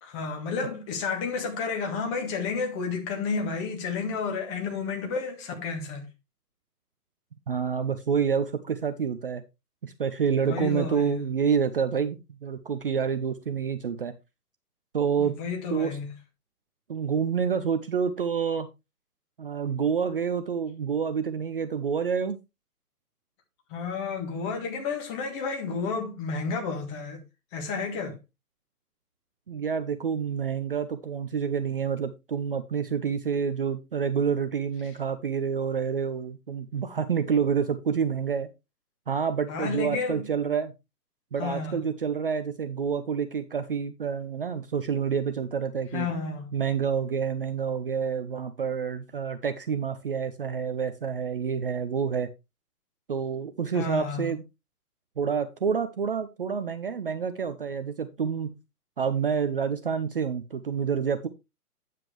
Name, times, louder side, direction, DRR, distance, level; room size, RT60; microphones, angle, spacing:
voice 1, 0.0-6.1 10.4-11.2 15.2-16.1 23.7-27.2 27.5-28.2 39.5-40.2 41.4-41.8 45.9-46.5 53.7-54.3, left 5 dB, 20° left, 1.6 m, -31 dB
voice 2, 7.5-9.4 9.8-14.1 14.9-15.3 15.7-16.0 16.9-18.7 19.4-22.4 29.5-38.5 39.1-40.7 41.3-46.1 46.5-52.3 53.1-54.4 55.2-58.6 59.0-61.3, right 6 dB, 35° right, 0.6 m, -28 dB
9.2 x 7.5 x 3.2 m
figure-of-eight pair, 130°, 46 cm